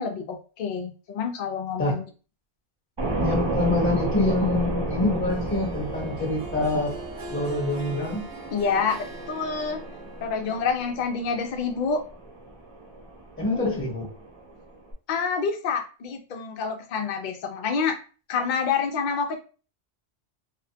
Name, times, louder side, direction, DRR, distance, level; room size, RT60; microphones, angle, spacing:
voice 1, 0.0-2.0 8.5-9.8 10.2-12.0 15.1-18.0 18.3-19.4, left 5 dB, 60° left, 4 dB, 0.5 m, -27 dB
sound 1, 3.0-14.9, right 2 dB, 50° right, 0.3 m, -33 dB
voice 2, 3.2-6.9 7.3-8.2 13.4-14.1, left 2 dB, 10° left, -4 dB, 0.8 m, -25 dB
Harp, 5.3-11.1, right 3 dB, 70° right, 0.9 m, -43 dB
2.5 x 2.0 x 2.7 m, 0.36 s
omnidirectional pair, 1.2 m